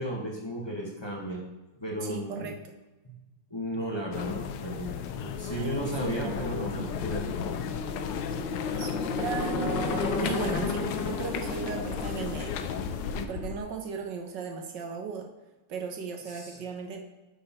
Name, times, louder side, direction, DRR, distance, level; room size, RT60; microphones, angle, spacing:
voice 1, 0.0-1.4 1.8-2.5 3.0-3.2 3.5-7.4 16.2-16.6, equal, 15° left, -2 dB, 1.1 m, -34 dB
voice 2, 2.1-2.6 5.5-6.4 8.2-8.3 8.8-12.6 13.3-15.3 15.7-17.0, right 6 dB, 60° right, 3 dB, 1.5 m, -36 dB
sound 1, 4.1-13.3, left 8 dB, 85° left, 1.5 m, -36 dB
sound 2, 5.4-13.6, left 4 dB, 60° left, 1.4 m, -33 dB
10.0 x 4.4 x 4.2 m, 1.1 s
omnidirectional pair, 2.4 m